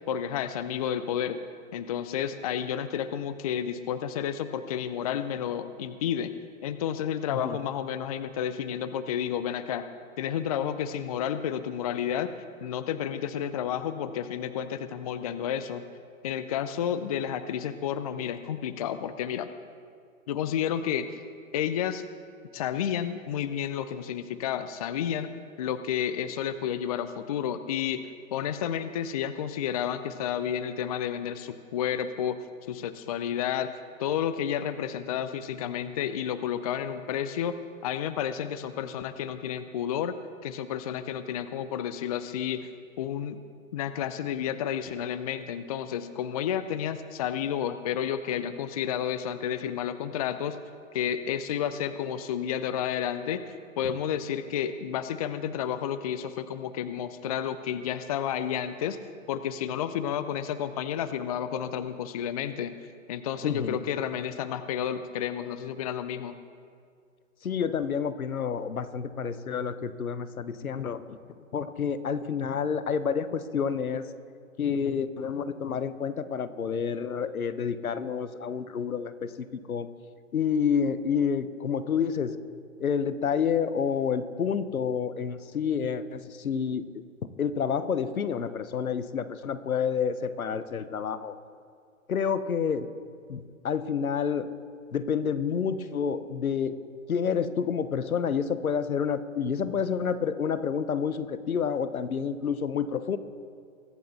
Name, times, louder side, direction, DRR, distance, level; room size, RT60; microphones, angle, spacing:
voice 1, 0.1-1.4 1.7-6.3 6.6-9.8 10.2-12.3 12.6-15.9 16.2-19.5 20.3-21.2 21.5-22.0 22.5-25.3 25.6-32.4 32.7-33.7 34.0-40.1 40.4-42.7 43.0-43.4 43.7-50.6 50.9-53.4 53.8-59.0 59.3-62.7 63.1-66.4, left 9 dB, 30° left, 12 dB, 0.4 m, -31 dB
voice 2, 63.4-63.8 67.4-71.2 71.5-74.1 74.6-79.3 79.7-79.9 80.3-82.3 82.8-86.8 87.4-91.3 92.1-92.9 93.3-94.5 94.9-96.8 97.1-103.2, left 7 dB, 85° left, 13 dB, 1.0 m, -29 dB
22.5 x 9.1 x 4.0 m, 2.2 s
hypercardioid pair, 125°, 41 cm